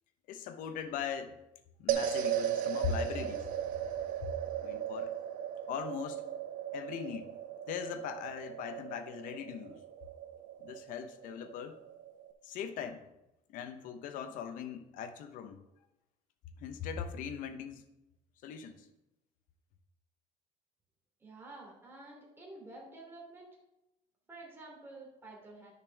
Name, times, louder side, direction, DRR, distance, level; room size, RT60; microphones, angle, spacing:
voice 1, 0.3-1.4 1.8-3.5 4.6-5.1 5.7-6.3 6.7-7.3 7.7-9.8 10.6-11.8 12.4-13.0 13.5-15.6 16.6-17.9 18.4-18.9, left 7 dB, 65° left, 0.9 m, -40 dB
sound 1, 1.9-12.3, right 10 dB, 60° right, 0.8 m, -37 dB
voice 2, 21.2-23.5 24.3-25.7, right 2 dB, 15° right, 3.1 m, -50 dB
10.5 x 6.7 x 3.5 m
cardioid pair, 140°, 15 cm